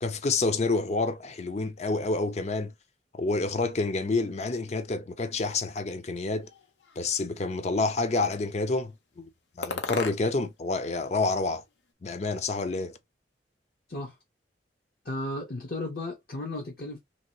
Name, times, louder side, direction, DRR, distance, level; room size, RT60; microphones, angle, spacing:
voice 1, 0.0-2.7 3.1-6.5 7.0-9.3 9.6-11.6 12.0-13.0, left 3 dB, 35° left, 0.5 m, -28 dB
sound 1, 6.4-7.4 8.1-8.7 9.6-10.6 10.8-11.9, left 4 dB, 80° left, 0.7 m, -39 dB
voice 2, 15.0-17.0, left 2 dB, 55° left, 0.9 m, -34 dB
3.0 x 2.9 x 2.8 m
head